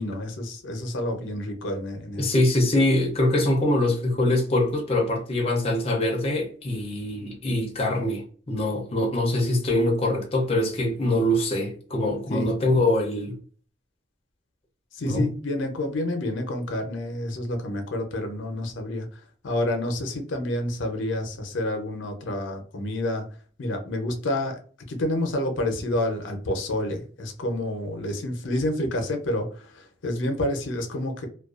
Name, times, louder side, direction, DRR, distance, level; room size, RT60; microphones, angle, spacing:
voice 1, 0.0-2.3 12.3-12.5 14.9-23.2 23.6-24.6 24.9-31.3, left 1 dB, 80° left, 0.6 m, -29 dB
voice 2, 2.2-13.4 15.0-15.3, left 1 dB, 30° left, 0.5 m, -23 dB
2.3 x 2.2 x 2.3 m
head